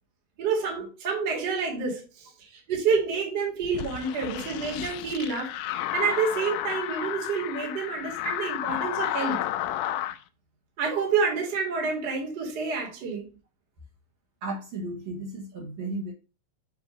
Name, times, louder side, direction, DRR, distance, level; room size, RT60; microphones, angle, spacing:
voice 1, 0.4-5.5 5.9-9.4 10.8-13.3, right 5 dB, 40° right, -1 dB, 2.0 m, -28 dB
sound 1, 3.7-10.2, left 13 dB, 80° left, 1.9 m, -32 dB
voice 2, 14.4-16.1, right 2 dB, 60° right, -3 dB, 2.4 m, -34 dB
7.2 x 2.9 x 5.0 m, 0.33 s
omnidirectional pair, 3.8 m